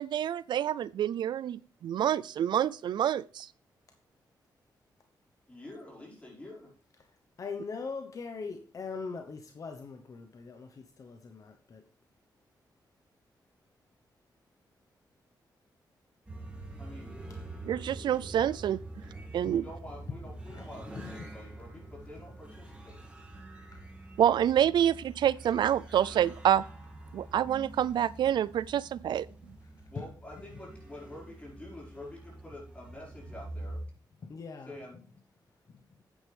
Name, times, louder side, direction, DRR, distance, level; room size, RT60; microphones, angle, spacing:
voice 1, 0.0-3.5 17.6-18.8 19.3-19.6 24.2-26.6 27.1-29.3, right 10 dB, 80° right, 0.3 m, -27 dB
voice 2, 5.5-6.7 16.8-17.2 19.4-23.0 29.9-33.8 34.7-35.0, left 1 dB, 15° left, 4.9 m, -47 dB
voice 3, 7.4-11.8 19.4-19.5 20.1-20.2 20.5-20.7 20.9-21.3 23.7-23.8 30.0-30.1 30.5-30.6 34.3-34.7 35.7-36.0, left 4 dB, 50° left, 0.9 m, -41 dB
sound 1, 16.3-33.9, right 2 dB, 15° right, 2.5 m, -46 dB
9.3 x 9.0 x 3.4 m
wide cardioid pair, 145°, 8 cm